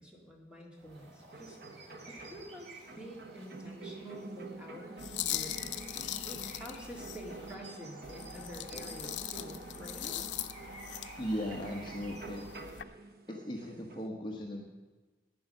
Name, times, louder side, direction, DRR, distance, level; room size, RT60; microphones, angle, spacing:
voice 1, 0.0-1.6 2.1-5.9 6.3-10.2, equal, 5° right, -1 dB, 1.9 m, -48 dB
sound 1, 0.8-12.6, right 2 dB, 80° right, 1.9 m, -52 dB
sound 2, 1.3-14.1, right 3 dB, 55° right, 0.8 m, -49 dB
sound 3, 5.0-7.6 8.0-12.8, left 12 dB, 85° left, 0.5 m, -41 dB
voice 2, 11.2-12.4 13.3-14.7, equal, 25° left, 0 dB, 1.0 m, -37 dB
11.0 x 9.5 x 6.3 m, 1.3 s
head